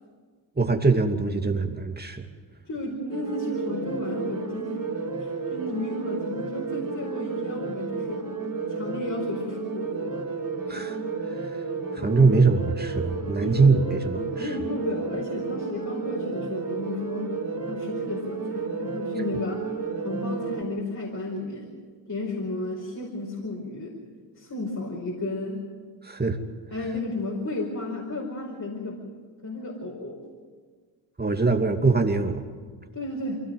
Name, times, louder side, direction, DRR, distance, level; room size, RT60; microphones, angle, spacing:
voice 1, 0.6-2.3 10.7-11.0 11.3-11.6 11.9-14.5 26.0-26.4 31.2-32.4, right 4 dB, 20° right, 4 dB, 2.7 m, -23 dB
voice 2, 2.6-4.8 5.2-8.2 8.7-10.2 13.4-13.7 14.2-17.4 17.7-19.6 20.0-21.7 22.0-23.9 24.4-25.6 26.7-29.0 29.4-30.2 32.9-33.4, left 2 dB, 40° left, -2 dB, 5.1 m, -33 dB
sound 1, 3.1-20.6, right 4 dB, 40° right, 5.1 m, -32 dB
23.5 x 17.0 x 8.0 m, 1.6 s
supercardioid pair, 50°, 49 cm